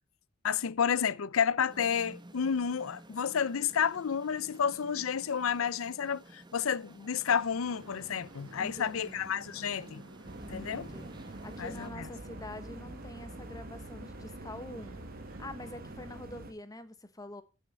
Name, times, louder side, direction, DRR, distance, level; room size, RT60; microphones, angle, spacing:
voice 1, 0.4-10.0 10.5-10.9 11.6-12.1, left 7 dB, 85° left, 0.5 m, -31 dB
sound 1, 1.7-11.9, right 1 dB, 20° right, 1.3 m, -52 dB
sound 2, 7.5-16.2, right 2 dB, 85° right, 1.9 m, -53 dB
voice 2, 8.6-9.2 10.5-15.0 15.4-17.4, left 1 dB, 20° left, 1.1 m, -45 dB
sound 3, 10.3-16.5, right 1 dB, 45° right, 1.3 m, -46 dB
13.0 x 6.4 x 5.3 m
head